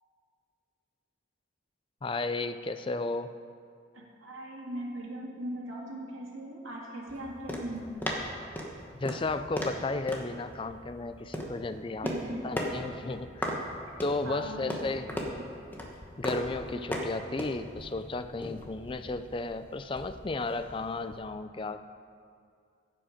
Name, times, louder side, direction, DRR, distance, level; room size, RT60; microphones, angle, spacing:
voice 1, 2.0-3.3 9.0-12.1 12.4-13.5 14.0-15.1 16.2-21.9, left 3 dB, 25° left, 11 dB, 0.3 m, -34 dB
voice 2, 3.9-8.0 12.0-12.5 14.2-15.5 16.7-16.8, right 1 dB, 85° right, -3 dB, 2.1 m, -39 dB
sound 1, 7.1-21.3, equal, 10° left, 1.0 m, -38 dB
15.5 x 7.7 x 5.1 m, 2.4 s
head